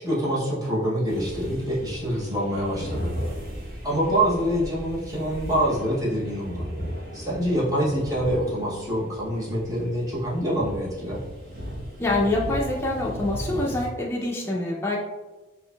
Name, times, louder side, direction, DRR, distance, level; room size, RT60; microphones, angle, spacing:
voice 1, 0.0-3.1 3.8-6.7 7.1-11.2, equal, 20° right, -6 dB, 0.8 m, -26 dB
sound 1, 1.1-13.9, equal, 50° right, 0.9 m, -36 dB
voice 2, 12.0-15.0, left 2 dB, 15° left, -3 dB, 0.4 m, -25 dB
4.6 x 2.5 x 2.3 m, 1.2 s
head